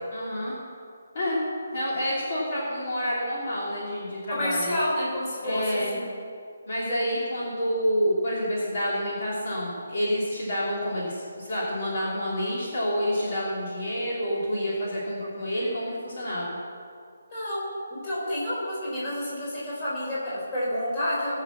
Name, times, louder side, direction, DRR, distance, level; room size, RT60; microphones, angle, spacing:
voice 1, 0.1-0.5 1.1-1.4 1.7-4.7 5.4-5.9 6.7-16.6, equal, 35° left, -7 dB, 3.2 m, -28 dB
voice 2, 4.3-5.6 5.9-6.1 17.3-17.6 18.0-21.4, left 1 dB, 15° left, -8 dB, 3.9 m, -29 dB
20.0 x 6.8 x 7.1 m, 2.3 s
hypercardioid pair, 180°, 0 cm